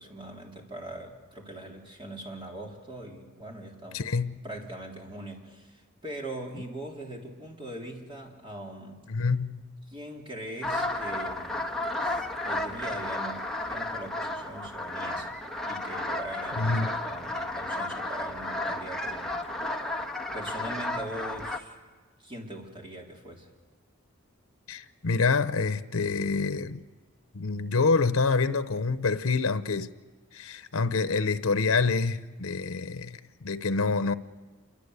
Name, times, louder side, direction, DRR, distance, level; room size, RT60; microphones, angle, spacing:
voice 1, 0.0-4.0 4.4-9.0 9.9-11.7 12.0-20.0 20.3-21.8 22.2-23.5, right 1 dB, 25° right, 3.9 m, -41 dB
voice 2, 3.9-4.4 9.1-9.6 16.6-16.9 24.7-26.8 27.3-29.9 30.3-34.1, left 4 dB, 80° left, 0.9 m, -27 dB
sound 1, 10.6-21.6, left 1 dB, ahead, 1.5 m, -33 dB
28.0 x 23.5 x 8.3 m
head